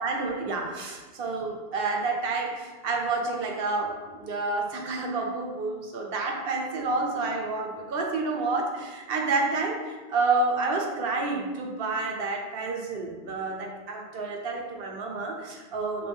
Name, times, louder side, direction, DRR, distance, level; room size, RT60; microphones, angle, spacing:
voice 1, 0.0-16.1, right 3 dB, 70° right, 1 dB, 0.8 m, -29 dB
4.3 x 2.2 x 3.4 m, 1.3 s
omnidirectional pair, 1.0 m